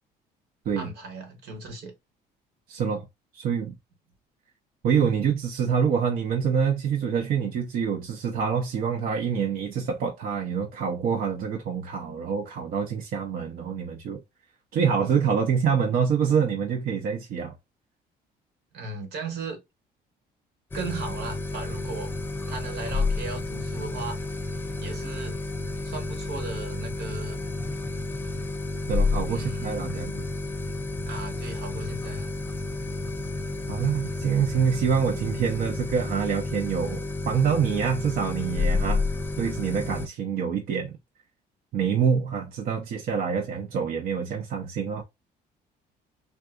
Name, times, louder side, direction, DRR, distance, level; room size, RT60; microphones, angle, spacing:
voice 1, 0.8-1.9 18.7-19.6 20.7-22.1 22.5-24.2 24.8-25.4 25.8-27.4 29.3-30.1 31.1-32.3, right 4 dB, 80° right, 1.3 m, -37 dB
voice 2, 2.7-3.1 3.3-3.8 4.8-14.2 14.7-17.5 28.9-30.3 33.7-39.0 39.4-41.0 41.7-45.0, right 7 dB, 60° right, 0.7 m, -26 dB
sound 1, 20.7-40.1, left 3 dB, 10° left, 0.4 m, -30 dB
3.6 x 2.6 x 2.4 m
cardioid pair, 110°, 17 cm